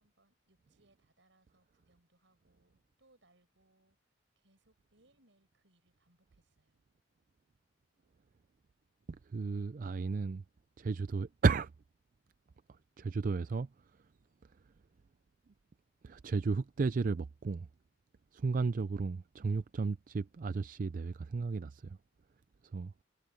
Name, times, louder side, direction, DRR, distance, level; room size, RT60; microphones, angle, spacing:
voice 1, 0.0-4.0 4.4-6.8, right 2 dB, 75° right, 7.6 m, -71 dB
voice 2, 9.2-10.4 10.8-11.7 12.7-14.1 14.4-14.5 16.0-17.7 18.3-22.0 22.6-22.9, right 4 dB, 45° right, 0.4 m, -34 dB
head